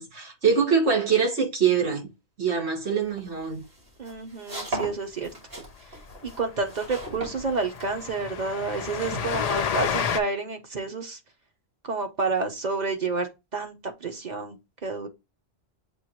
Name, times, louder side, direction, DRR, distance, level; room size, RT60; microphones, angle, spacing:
voice 1, 0.0-2.1 2.4-3.6, right 6 dB, 85° right, 1.8 m, -24 dB
sound 1, 3.1-8.2, right 2 dB, 65° right, 2.4 m, -37 dB
voice 2, 4.0-5.3 6.2-11.2 11.8-13.7 14.0-15.1, right 4 dB, 45° right, 1.0 m, -29 dB
Train, 5.6-5.7 6.0-6.1 6.4-6.5 6.8-10.2, left 7 dB, 55° left, 0.4 m, -30 dB
7.2 x 2.6 x 2.8 m
omnidirectional pair, 1.1 m